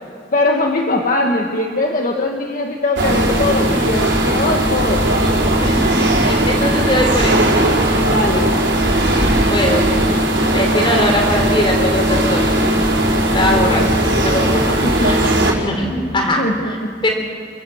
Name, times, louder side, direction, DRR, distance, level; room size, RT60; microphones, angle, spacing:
voice 1, 0.3-5.0 8.1-9.3 14.8-15.1 16.4-16.9, left 2 dB, 50° left, 1 dB, 1.6 m, -21 dB
sound 1, 3.0-15.5, right 1 dB, 90° right, 4.6 m, -17 dB
voice 2, 5.6-7.6 9.5-10.1 10.5-12.6 13.3-14.5 15.0-15.3 15.6-16.8 17.0-17.1, left 1 dB, 30° left, 2 dB, 4.1 m, -21 dB
29.0 x 16.0 x 7.9 m, 2.4 s
head